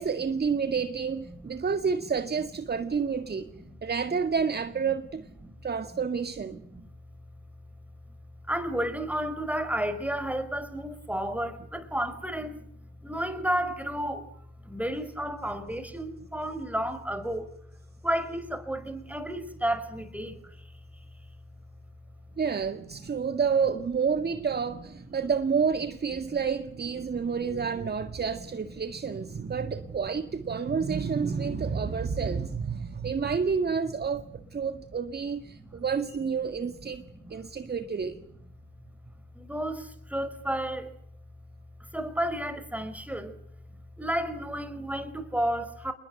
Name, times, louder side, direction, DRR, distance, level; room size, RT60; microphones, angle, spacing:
voice 1, 0.0-3.5 3.8-5.2 5.6-6.6 22.4-34.2 34.5-37.0 37.3-38.2, right 6 dB, 25° right, 1.8 m, -29 dB
voice 2, 3.3-3.8 5.4-5.5 6.5-6.9 8.5-12.6 13.0-14.3 14.6-17.5 18.0-20.7 23.0-23.2 25.1-25.2 27.0-27.6 28.4-29.1 29.6-29.9 30.7-30.8 31.8-32.1 32.8-33.1 35.5-35.8 36.8-37.3 37.6-38.2 39.3-40.9 41.9-43.4 44.0-45.9, right 1 dB, 5° right, 5.3 m, -33 dB
29.0 x 21.0 x 7.8 m
figure-of-eight pair, 55°, 39 cm